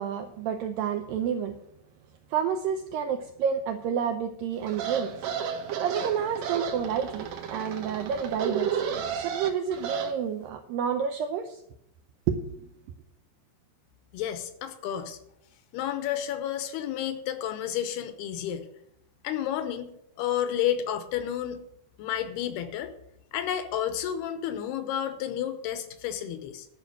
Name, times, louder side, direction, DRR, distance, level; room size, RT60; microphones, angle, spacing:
voice 1, 0.0-1.6 2.3-5.1 5.8-8.7 9.1-11.6 12.3-12.6, right 7 dB, 80° right, 6 dB, 2.0 m, -29 dB
sound 1, 4.7-10.1, right 7 dB, 65° right, 2.4 m, -32 dB
voice 2, 14.1-15.2 15.7-18.7 19.2-19.9 20.2-21.6 22.0-22.9 23.3-26.7, left 10 dB, 80° left, 10 dB, 2.6 m, -31 dB
12.0 x 6.0 x 8.9 m, 0.77 s
omnidirectional pair, 4.9 m